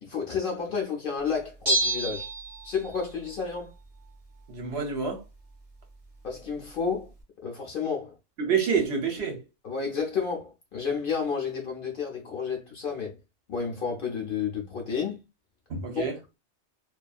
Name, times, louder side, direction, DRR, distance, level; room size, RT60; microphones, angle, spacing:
voice 1, 0.0-2.3 2.6-3.7 6.2-7.1 7.4-8.1 9.6-13.2 13.5-15.2 15.9-16.1, left 6 dB, 55° left, 0.7 m, -31 dB
Bell, 1.7-3.1 3.3-3.4, right 2 dB, 40° right, 1.1 m, -28 dB
voice 2, 4.5-5.2 8.4-9.4 15.7-16.1, right 6 dB, 65° right, 0.9 m, -27 dB
2.6 x 2.3 x 2.3 m
omnidirectional pair, 1.3 m